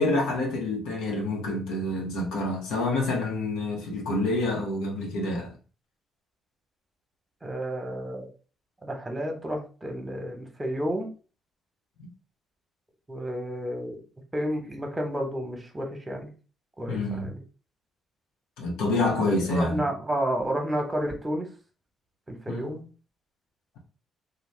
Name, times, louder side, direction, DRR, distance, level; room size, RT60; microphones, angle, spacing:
voice 1, 0.0-5.5 16.9-17.3 18.6-19.9 22.5-22.7, left 2 dB, 80° left, 0.8 m, -27 dB
voice 2, 7.4-8.3 8.8-11.1 13.1-14.0 14.3-16.3 16.8-17.4 19.2-21.5 22.3-22.9, equal, 20° right, 1.0 m, -31 dB
2.6 x 2.2 x 3.2 m
hypercardioid pair, 50°, 0 cm